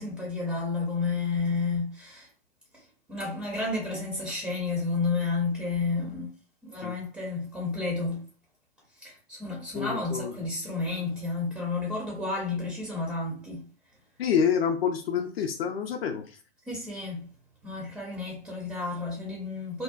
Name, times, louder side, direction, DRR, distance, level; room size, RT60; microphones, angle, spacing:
voice 1, 0.0-2.3 2.7-6.3 6.6-8.2 8.9-13.7 16.7-17.3 17.6-19.8, left 3 dB, 5° right, 0.4 m, -31 dB
voice 2, 9.7-10.3 14.2-16.3, left 7 dB, 65° left, 0.4 m, -27 dB
2.6 x 2.1 x 2.3 m
figure-of-eight pair, 110°, 33 cm